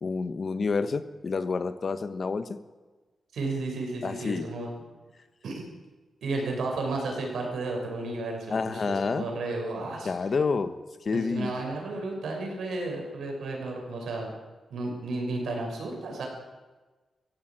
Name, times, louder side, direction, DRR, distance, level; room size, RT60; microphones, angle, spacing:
voice 1, 0.0-2.5 4.0-4.5 8.5-9.3 10.0-11.5, left 4 dB, 40° left, 11 dB, 1.1 m, -29 dB
voice 2, 3.3-4.7 5.4-5.6 6.2-10.1 11.1-14.3 14.7-16.3, right 2 dB, 85° right, 1 dB, 6.0 m, -33 dB
18.5 x 15.5 x 8.8 m, 1.2 s
wide cardioid pair, 175°, 0 cm